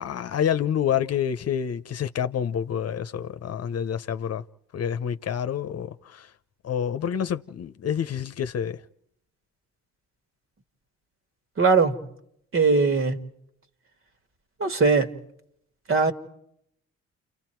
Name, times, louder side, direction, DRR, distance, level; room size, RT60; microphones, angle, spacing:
voice 1, 0.0-4.4 4.7-6.3 6.6-8.8, left 8 dB, 55° left, 0.9 m, -28 dB
voice 2, 11.6-12.0 12.5-13.2 14.6-15.1 15.9-16.1, right 4 dB, 45° right, 2.3 m, -20 dB
30.0 x 29.0 x 4.6 m
cardioid pair, 90°, 30 cm